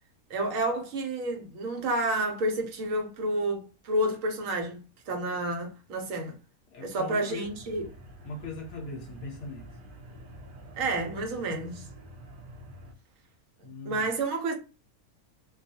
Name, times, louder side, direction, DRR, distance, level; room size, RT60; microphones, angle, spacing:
voice 1, 0.3-6.3 6.8-7.9 10.7-11.9 13.8-14.5, right 2 dB, 70° right, 1.0 m, -30 dB
voice 2, 6.7-7.5 8.2-9.7 13.6-14.0, left 3 dB, 65° left, 0.8 m, -40 dB
sound 1, 7.4-12.9, equal, 90° right, 0.4 m, -47 dB
2.3 x 2.3 x 2.7 m
omnidirectional pair, 1.5 m